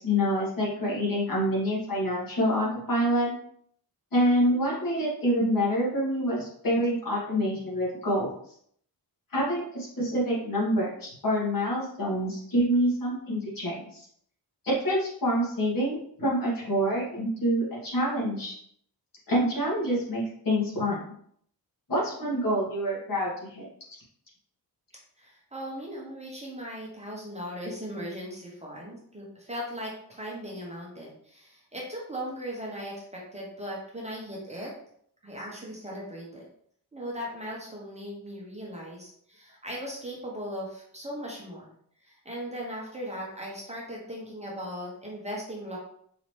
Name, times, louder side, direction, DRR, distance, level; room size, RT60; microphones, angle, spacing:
voice 1, 0.0-3.3 4.1-8.4 9.3-14.1 14.6-18.5 19.3-21.0 21.9-23.7, equal, 55° left, -5 dB, 1.6 m, -27 dB
voice 2, 25.2-34.7 35.2-36.4 36.9-41.7 42.0-45.8, equal, 15° right, -4 dB, 0.8 m, -38 dB
4.1 x 2.8 x 3.1 m, 0.65 s
wide cardioid pair, 175°, 40 cm